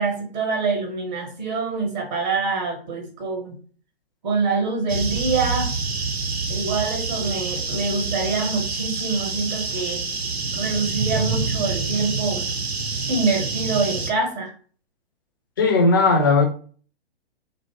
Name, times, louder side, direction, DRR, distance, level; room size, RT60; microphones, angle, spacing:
voice 1, 0.0-3.6 4.2-5.7 6.5-10.1 10.5-12.5 13.1-14.5, right 4 dB, 35° right, 0 dB, 0.7 m, -25 dB
sound 1, 4.9-14.1, right 4 dB, 85° right, 0.6 m, -27 dB
voice 2, 15.6-16.4, left 3 dB, 20° left, 3 dB, 0.3 m, -17 dB
2.6 x 2.0 x 2.9 m, 0.43 s
figure-of-eight pair, 120°, 31 cm